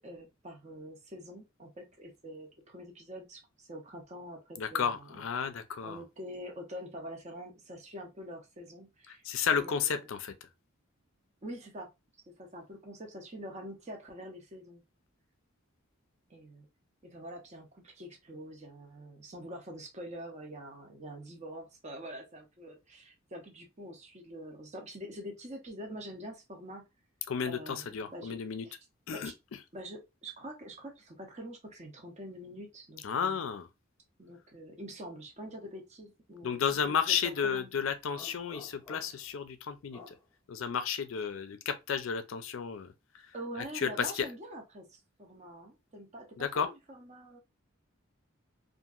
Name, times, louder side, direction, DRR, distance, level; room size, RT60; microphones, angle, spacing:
voice 1, 0.0-5.2 5.8-9.2 9.5-10.1 11.4-11.9 12.3-14.8 16.3-16.7 17.0-26.8 27.4-28.8 29.1-29.4 29.7-33.4 34.2-37.8 41.2-41.3 43.3-47.4, equal, 35° right, 0.6 m, -45 dB
voice 2, 4.6-6.0 9.3-10.3 27.3-28.7 29.1-29.6 33.0-33.7 36.4-40.0 40.5-42.9 43.7-44.3 46.4-46.7, left 7 dB, 65° left, 0.4 m, -32 dB
sound 1, 38.1-39.3 39.9-40.2, left 3 dB, 10° left, 0.8 m, -51 dB
2.8 x 2.5 x 2.3 m
head